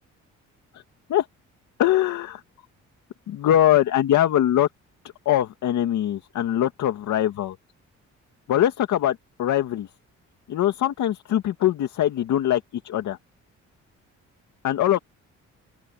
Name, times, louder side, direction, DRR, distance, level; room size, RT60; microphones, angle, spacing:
voice 1, 1.8-2.4 3.3-4.7 5.3-7.6 8.5-9.9 10.5-13.2 14.6-15.0, left 12 dB, 75° left, 2.1 m, -22 dB
open air
cardioid pair, 90°, 30 cm